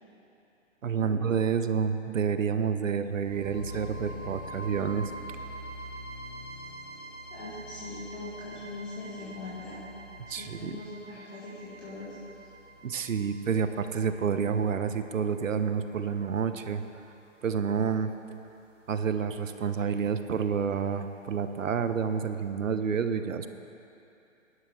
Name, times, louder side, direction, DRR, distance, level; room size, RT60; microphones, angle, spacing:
voice 1, 0.8-5.1 10.3-10.7 12.8-16.8 17.4-18.1 18.9-23.5, right 6 dB, 85° right, 9 dB, 0.9 m, -29 dB
sound 1, 3.2-17.2, right 1 dB, 30° right, 3.4 m, -45 dB
voice 2, 7.3-9.8 10.3-12.2, left 2 dB, 25° left, -9 dB, 2.1 m, -41 dB
18.0 x 11.0 x 3.6 m, 2.8 s
hypercardioid pair, 160°, 38 cm